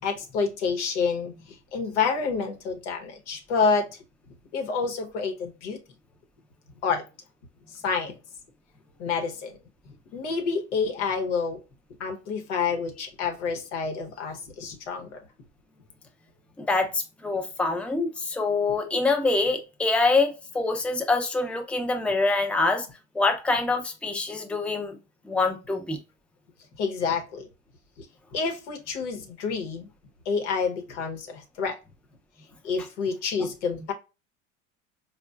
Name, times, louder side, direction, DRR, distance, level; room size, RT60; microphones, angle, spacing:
voice 1, 0.0-3.9 4.5-5.8 6.8-7.0 7.7-8.2 9.0-9.6 10.1-11.6 12.0-15.2 26.8-27.5 28.0-28.1 28.3-29.9 30.2-31.8 32.6-33.9, left 5 dB, 75° left, 1.0 m, -28 dB
voice 2, 16.6-22.9 23.1-25.0 25.2-26.0, left 3 dB, 5° left, 0.6 m, -25 dB
4.2 x 2.4 x 2.3 m
hypercardioid pair, 75°, 35 cm